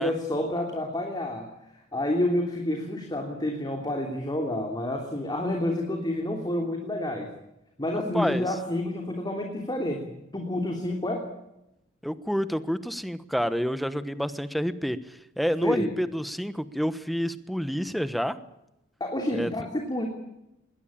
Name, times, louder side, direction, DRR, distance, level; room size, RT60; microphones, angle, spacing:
voice 1, 0.0-1.5 1.9-7.3 7.8-11.3 15.6-15.9 19.0-20.0, left 1 dB, 20° left, 2 dB, 3.2 m, -29 dB
voice 2, 7.9-8.5 12.0-18.4 19.3-19.5, equal, ahead, 12 dB, 1.2 m, -29 dB
21.5 x 18.0 x 8.7 m, 0.87 s
head